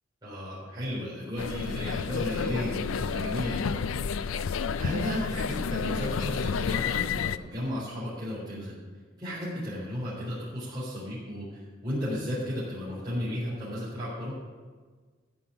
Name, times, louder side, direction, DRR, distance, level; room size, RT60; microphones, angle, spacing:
voice 1, 0.2-3.7 4.8-8.7 9.2-14.3, equal, 20° right, -9 dB, 4.0 m, -34 dB
sound 1, 1.4-7.4, left 6 dB, 85° left, 0.4 m, -30 dB
14.0 x 5.7 x 8.1 m, 1.5 s
head